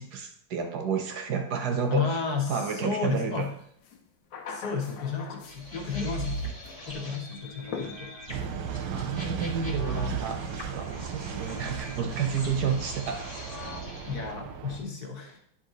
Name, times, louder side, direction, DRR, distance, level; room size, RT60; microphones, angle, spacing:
voice 1, 0.0-2.2 2.5-3.5 8.3-13.3, right 6 dB, 65° right, 5 dB, 1.3 m, -31 dB
voice 2, 1.9-3.5 4.5-6.5 6.8-8.1 14.1-15.4, left 6 dB, 60° left, 2 dB, 1.6 m, -32 dB
sound 1, 3.4-3.5 3.8-5.9 6.2-6.8 7.7-8.5, left 5 dB, 85° left, 1.7 m, -41 dB
sound 2, 5.5-14.3, right 1 dB, 15° left, 1.5 m, -39 dB
sound 3, 8.3-14.8, right 7 dB, 90° right, 1.5 m, -36 dB
10.0 x 4.2 x 3.9 m, 0.69 s
omnidirectional pair, 2.0 m